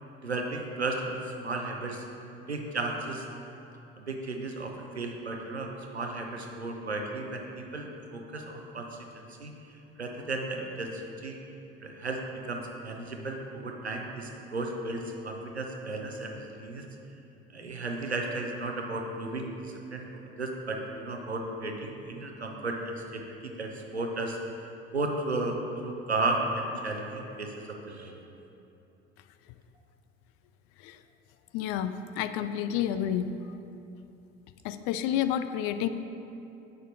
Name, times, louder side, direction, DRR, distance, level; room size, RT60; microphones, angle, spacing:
voice 1, 0.2-2.0 2.5-3.3 4.0-11.4 11.8-16.8 17.5-24.4 24.9-28.1, right 2 dB, 90° right, 2 dB, 0.7 m, -34 dB
voice 2, 31.5-33.4 34.6-35.9, left 10 dB, 50° left, 11 dB, 0.4 m, -30 dB
9.9 x 7.8 x 2.6 m, 2.9 s
figure-of-eight pair, 60°, 32 cm